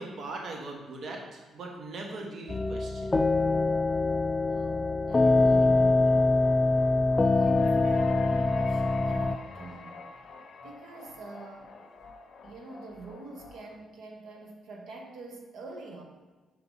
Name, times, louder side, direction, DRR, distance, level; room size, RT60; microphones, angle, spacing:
voice 1, 0.0-3.2, right 2 dB, 55° right, 1 dB, 1.1 m, -40 dB
sound 1, 2.5-9.4, left 3 dB, 25° left, 0.3 m, -24 dB
voice 2, 4.5-6.4 7.2-10.0 10.6-11.8 12.4-16.0, right 3 dB, 75° right, 1 dB, 1.1 m, -45 dB
sound 2, 5.4-13.8, left 4 dB, 50° left, 0.7 m, -48 dB
4.9 x 4.7 x 5.5 m, 1.3 s
cardioid pair, 90°, 0 cm